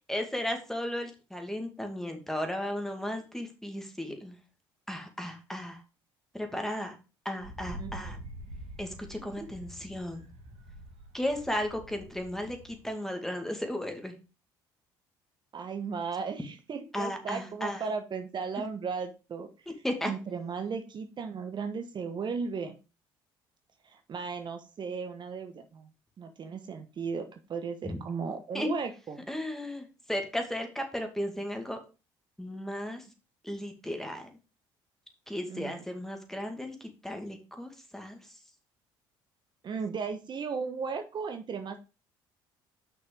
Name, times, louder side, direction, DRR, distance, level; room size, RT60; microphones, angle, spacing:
voice 1, 0.1-4.4 4.9-5.8 6.3-7.0 7.2-8.2 8.8-10.3 11.1-14.1 16.9-17.8 19.8-20.1 27.8-28.0 28.5-28.7 29.3-31.8 32.4-33.0 33.4-34.3 35.3-38.2, left 1 dB, 5° left, 4 dB, 2.3 m, -35 dB
Wind, 7.4-12.9, right 1 dB, 65° right, 2.7 m, -46 dB
voice 2, 7.8-8.2 9.2-9.5 15.5-19.5 20.0-22.8 23.8-25.9 26.2-29.2 35.5-35.8 39.6-41.8, right 5 dB, 45° right, 7 dB, 1.1 m, -36 dB
6.1 x 6.1 x 5.1 m, 0.31 s
supercardioid pair, 70°, 11 cm